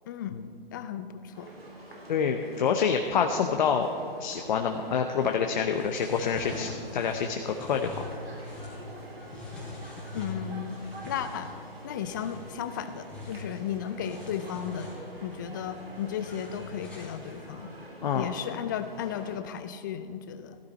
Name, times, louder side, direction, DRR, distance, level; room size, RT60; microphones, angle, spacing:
voice 1, 0.1-0.5 0.7-1.5 10.1-10.8 11.1-11.5 11.8-14.9 15.2-17.7 18.1-20.6, left 9 dB, 20° left, 11 dB, 0.4 m, -35 dB
sound 1, 1.3-19.4, right 1 dB, 90° right, 3.8 m, -46 dB
voice 2, 2.1-3.9 4.2-8.0 18.0-18.3, left 6 dB, 50° left, 4 dB, 0.9 m, -27 dB
sound 2, 5.7-17.6, left 2 dB, 5° left, 3.6 m, -43 dB
15.0 x 13.5 x 4.2 m, 2.2 s
hypercardioid pair, 140°, 30 cm